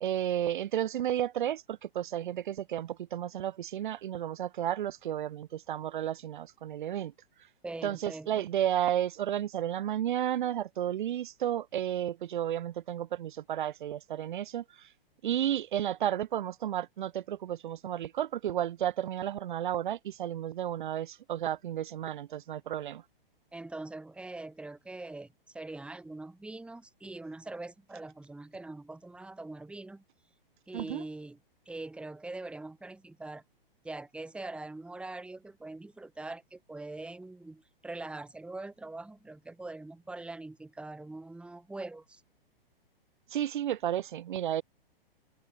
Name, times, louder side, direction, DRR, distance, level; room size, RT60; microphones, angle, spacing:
voice 1, 0.0-7.1 7.8-14.9 15.2-23.0 30.7-31.0 43.3-44.6, right 11 dB, 55° right, 1.3 m, -32 dB
voice 2, 7.6-8.4 23.5-30.0 30.7-31.4 31.6-33.4 33.8-42.2, right 2 dB, 5° right, 1.6 m, -43 dB
open air
figure-of-eight pair, 110°, 30 cm